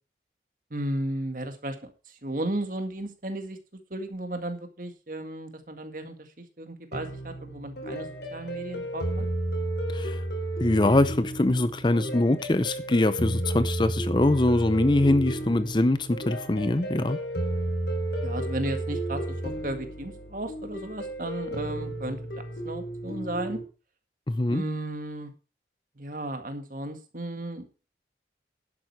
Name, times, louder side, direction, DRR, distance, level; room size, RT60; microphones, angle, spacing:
voice 1, 0.7-3.6 3.9-9.3 18.2-22.2 22.6-23.6 24.5-25.3 26.0-27.6, right 1 dB, 50° right, 6 dB, 1.9 m, -34 dB
sound 1, 6.9-23.6, right 1 dB, 70° left, 3.5 m, -32 dB
voice 2, 10.6-17.2 24.3-24.6, left 2 dB, 25° left, 13 dB, 0.5 m, -23 dB
11.0 x 8.6 x 4.6 m, 0.33 s
head